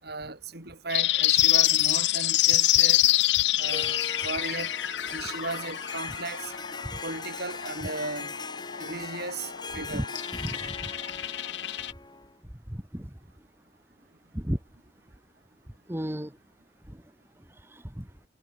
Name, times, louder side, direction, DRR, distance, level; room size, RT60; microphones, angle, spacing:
voice 1, 0.0-3.0 3.5-4.7 5.1-6.5 7.0-8.3 8.8-10.1, right 3 dB, 60° right, 4.4 m, -36 dB
sound 1, 0.9-11.9, left 15 dB, 70° left, 0.7 m, -26 dB
Harp, 3.6-12.4, left 4 dB, 25° left, 2.8 m, -40 dB
voice 2, 10.4-10.9 12.7-13.1 14.3-14.6 15.9-16.3 16.9-17.0 17.7-18.0, equal, 15° right, 1.4 m, -33 dB
head